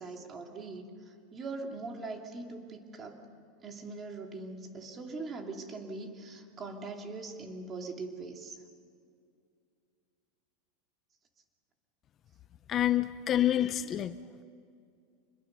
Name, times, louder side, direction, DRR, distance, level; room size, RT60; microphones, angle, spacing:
voice 1, 0.0-3.3 3.6-8.6, right 3 dB, 25° right, 3 dB, 2.7 m, -41 dB
voice 2, 12.7-14.2, left 12 dB, 35° left, 13 dB, 0.6 m, -27 dB
27.0 x 21.0 x 6.8 m, 2.4 s
supercardioid pair, 125°, 0 cm